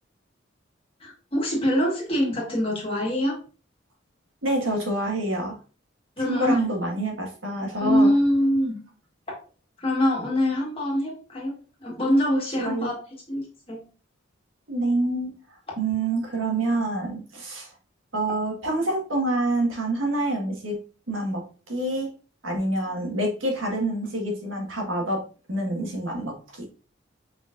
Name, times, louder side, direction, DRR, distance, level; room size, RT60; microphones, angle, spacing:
voice 1, 1.0-3.4 6.2-6.6 7.8-8.8 9.8-11.5 11.8-12.9 13.3-13.8, equal, 30° left, -2 dB, 1.5 m, -24 dB
voice 2, 4.4-5.6 6.2-8.1 12.6-12.9 14.7-15.3 15.8-17.7 18.1-20.8 21.1-22.1 22.4-26.7, right 2 dB, 80° right, 1 dB, 1.5 m, -27 dB
5.0 x 4.0 x 2.5 m, 0.37 s
head